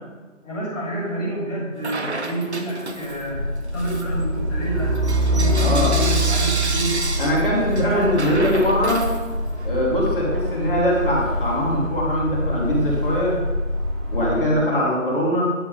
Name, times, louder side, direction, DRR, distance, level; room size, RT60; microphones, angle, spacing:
voice 1, 0.4-5.0 5.3-7.1 7.5-8.1, right 1 dB, 10° left, -15 dB, 2.4 m, -28 dB
Bell / Coin (dropping), 1.8-3.3 3.7-9.7, right 3 dB, 55° right, 1.1 m, -31 dB
Truck, 3.1-14.6, equal, 30° right, 3.0 m, -24 dB
voice 2, 5.5-6.0 7.2-9.1 9.6-13.4 14.1-15.5, equal, 40° left, -5 dB, 2.9 m, -22 dB
10.5 x 6.4 x 5.1 m, 1.3 s
figure-of-eight pair, 175°, 39 cm